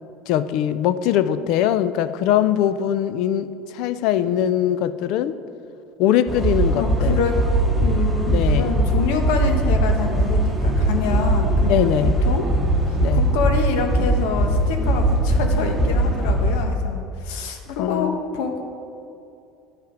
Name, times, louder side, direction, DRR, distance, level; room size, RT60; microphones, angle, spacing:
voice 1, 0.3-5.4 6.0-7.2 8.3-8.7 11.6-12.2 13.0-13.3 17.8-18.2, left 11 dB, 55° left, 14 dB, 0.4 m, -21 dB
sound 1, 6.3-16.6, right 1 dB, 10° right, 1.0 m, -20 dB
voice 2, 6.7-7.4 7.8-12.0 12.2-12.5 12.8-18.6, left 5 dB, 85° left, 4 dB, 1.1 m, -27 dB
10.5 x 5.6 x 5.1 m, 2.6 s
cardioid pair, 170°, 0 cm